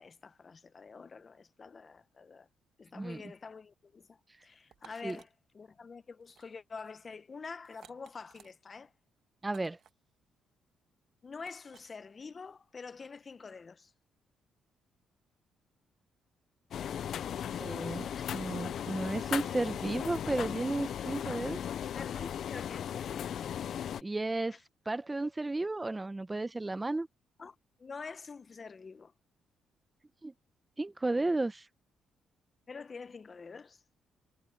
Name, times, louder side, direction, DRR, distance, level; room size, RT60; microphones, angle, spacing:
voice 1, 0.0-2.5 2.8-5.3 5.5-8.9 11.2-13.9 18.1-18.3 21.9-23.5 24.5-24.6 27.4-29.1 32.7-33.8, left 5 dB, 35° left, 0.9 m, -47 dB
voice 2, 2.9-3.3 5.0-5.2 9.4-9.8 17.6-21.6 24.0-24.6 24.9-27.1 30.2-30.3 30.8-31.7, right 2 dB, 15° right, 0.7 m, -33 dB
sound 1, 4.7-5.3 6.2-6.5 6.7-7.0 7.7-8.5 9.5-9.9 11.4-11.9, right 9 dB, 65° right, 1.3 m, -58 dB
sound 2, 16.7-24.0, left 9 dB, 65° left, 0.4 m, -37 dB
cardioid pair, 90°, 0 cm